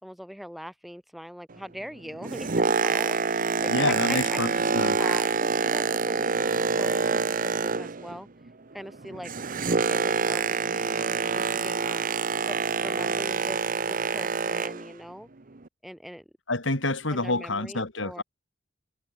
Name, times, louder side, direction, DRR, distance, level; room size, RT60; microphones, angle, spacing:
voice 1, 0.0-4.4 4.7-8.3 8.7-9.3 9.7-12.0 12.5-13.6 13.9-15.3 15.8-16.2 17.1-18.2, equal, ahead, 6.2 m, -41 dB
Boat Water vehicle, 2.1-8.2 8.5-14.9 15.6-15.7, right 4 dB, 45° right, 1.0 m, -26 dB
voice 2, 3.7-5.0 16.5-18.2, left 2 dB, 75° left, 5.1 m, -28 dB
head